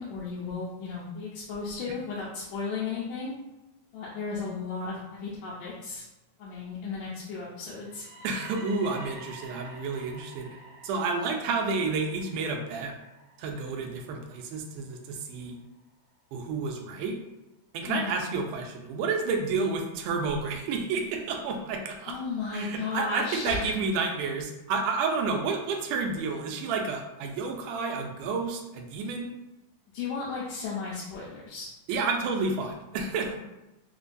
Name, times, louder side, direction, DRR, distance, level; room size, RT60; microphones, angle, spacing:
voice 1, 0.0-3.3 3.9-6.0 6.4-8.1 17.9-18.2 22.1-23.7 29.9-31.7 33.3-33.4, left 4 dB, 80° left, -6 dB, 1.8 m, -34 dB
sound 1, 7.7-15.6, right 1 dB, 65° right, 1.8 m, -50 dB
voice 2, 8.2-10.5 10.8-12.9 13.4-15.5 16.3-17.2 17.7-22.2 22.5-29.3 31.9-33.3, right 4 dB, 90° right, 2 dB, 2.1 m, -30 dB
5.0 x 2.2 x 2.5 m, 0.98 s
omnidirectional pair, 3.6 m